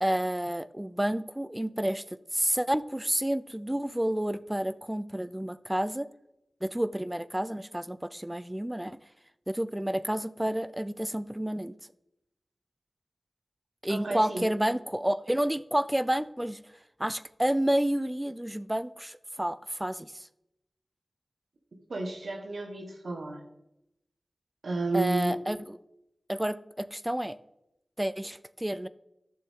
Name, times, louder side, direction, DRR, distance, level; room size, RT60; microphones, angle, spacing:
voice 1, 0.0-6.1 6.6-9.0 9.5-11.7 13.8-16.6 17.0-20.3 24.9-25.6 26.3-27.4 28.0-28.9, right 1 dB, 15° right, 15 dB, 0.4 m, -30 dB
voice 2, 13.9-14.4 21.9-23.4 24.6-25.4, right 3 dB, 85° right, 4 dB, 1.3 m, -31 dB
11.5 x 6.9 x 3.6 m, 0.86 s
cardioid pair, 45°, 0 cm